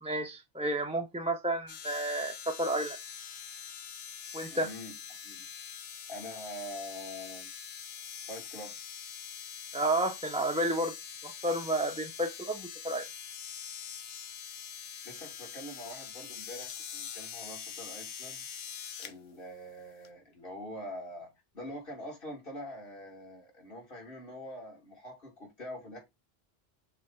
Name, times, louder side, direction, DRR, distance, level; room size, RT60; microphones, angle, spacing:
voice 1, 0.0-3.0 4.3-4.7 9.7-11.0 11.2-13.1, right 1 dB, 10° right, 0.5 m, -31 dB
sound 1, 1.7-19.1 20.0-20.1, left 8 dB, 80° left, 1.0 m, -44 dB
voice 2, 4.5-4.9 5.2-5.5 6.1-7.5 8.3-8.8 15.0-18.5 19.0-26.0, left 1 dB, 60° left, 2.7 m, -44 dB
6.0 x 3.5 x 4.6 m
omnidirectional pair, 1.0 m